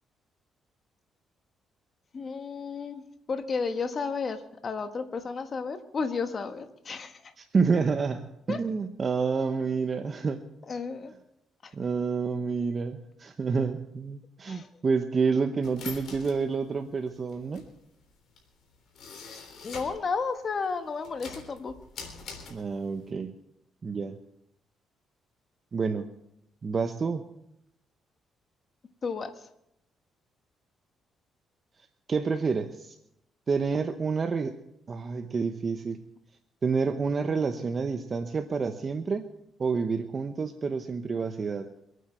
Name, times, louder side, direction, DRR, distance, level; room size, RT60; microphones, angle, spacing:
voice 1, 2.1-7.3 8.5-8.6 10.7-11.1 11.6-11.7 14.5-14.7 19.6-21.8 29.0-29.5, left 5 dB, 45° left, 7 dB, 1.3 m, -33 dB
voice 2, 7.4-10.5 11.7-17.6 22.5-23.3 23.8-24.2 25.7-26.1 26.6-27.2 32.1-33.0 33.5-34.6 34.9-36.0 36.6-39.3 39.6-41.7, right 5 dB, 40° right, 7 dB, 0.9 m, -28 dB
sound 1, 15.6-20.1 20.5-23.1, left 5 dB, 65° left, 3.6 m, -44 dB
24.5 x 9.3 x 4.4 m, 0.80 s
cardioid pair, 90°, 0 cm